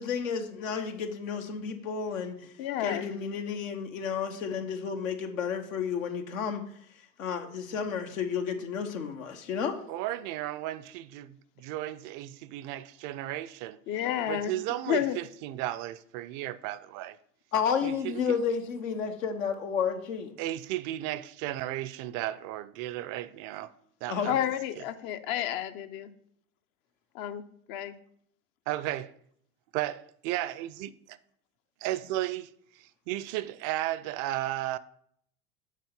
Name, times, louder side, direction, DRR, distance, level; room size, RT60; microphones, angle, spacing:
voice 1, 0.0-2.4 2.8-6.6 7.2-9.8 17.5-20.3 24.1-24.3, left 6 dB, 80° left, 1.0 m, -31 dB
voice 2, 2.6-3.1 13.9-14.5 14.9-15.2 24.3-26.1 27.1-27.9, left 11 dB, 60° left, 0.7 m, -31 dB
voice 3, 9.9-13.8 14.3-17.2 17.8-18.3 20.4-23.7 24.0-24.4 28.7-29.1 29.7-31.2 31.8-32.5 33.1-34.8, right 14 dB, 55° right, 0.5 m, -34 dB
6.5 x 4.2 x 5.2 m
hypercardioid pair, 75°, 39 cm